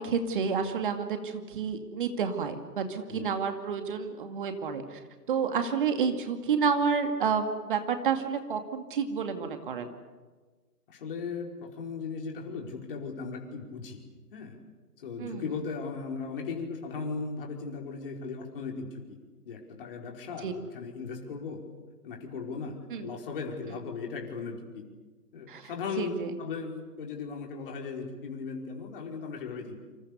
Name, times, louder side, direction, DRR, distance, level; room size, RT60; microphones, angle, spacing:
voice 1, 0.0-5.0 5.3-9.9 15.2-15.4 20.4-20.5 22.9-23.1 25.5-25.7 26.0-26.3, right 6 dB, 30° right, 7 dB, 2.3 m, -30 dB
voice 2, 10.9-14.0 14.3-14.6 15.0-19.2 19.4-21.6 22.0-24.8 25.3-26.1 26.4-29.8, left 5 dB, 35° left, 1 dB, 4.9 m, -37 dB
29.0 x 26.5 x 6.9 m, 1.3 s
figure-of-eight pair, 140°, 47 cm